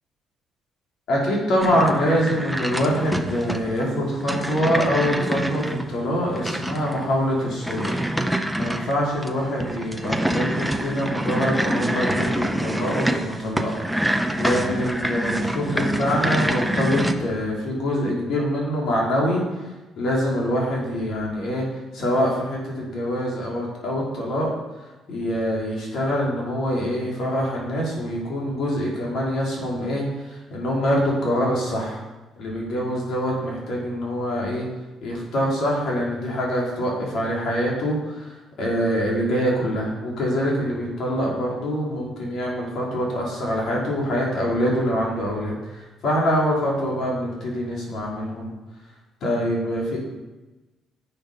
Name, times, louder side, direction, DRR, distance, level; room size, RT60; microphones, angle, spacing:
voice 1, 1.1-8.0 8.6-13.7 14.4-19.4 20.0-21.6 21.9-24.5 25.1-32.0 32.4-34.7 35.0-48.5 49.2-50.0, equal, 50° left, -3 dB, 3.3 m, -24 dB
sound 1, 1.6-17.1, right 1 dB, ahead, 0.5 m, -26 dB
10.5 x 6.9 x 5.6 m, 1.1 s
cardioid pair, 175°, 0 cm